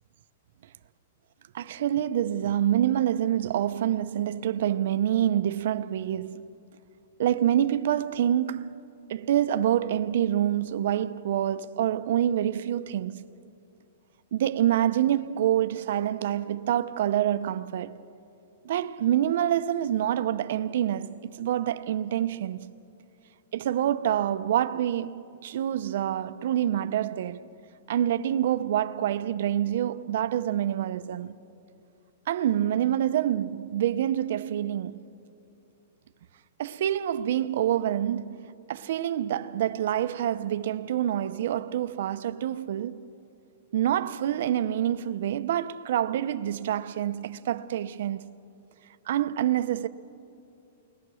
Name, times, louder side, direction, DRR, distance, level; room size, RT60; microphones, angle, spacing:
voice 1, 1.5-6.5 7.2-8.8 9.1-13.2 14.3-18.0 18.6-22.7 23.5-27.4 27.9-31.4 32.3-35.0 36.6-43.0 43.7-48.3 49.1-49.9, right 11 dB, 50° right, 0.6 m, -26 dB
30.0 x 21.0 x 6.3 m
hypercardioid pair, 175°, 0 cm